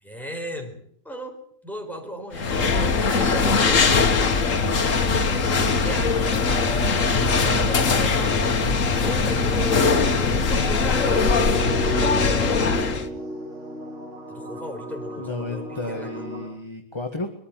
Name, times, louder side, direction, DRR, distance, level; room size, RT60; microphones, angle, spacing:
voice 1, 0.0-3.9 5.6-6.4 7.3-8.6 9.0-11.3 14.3-16.2, equal, ahead, 2 dB, 4.6 m, -36 dB
sound 1, 2.3-13.1, left 4 dB, 75° left, 1.9 m, -21 dB
sound 2, 10.5-16.5, right 1 dB, 60° right, 8.0 m, -33 dB
voice 2, 15.2-17.3, left 2 dB, 20° left, 4 dB, 1.9 m, -32 dB
23.0 x 14.0 x 9.2 m, 0.67 s
omnidirectional pair, 1.4 m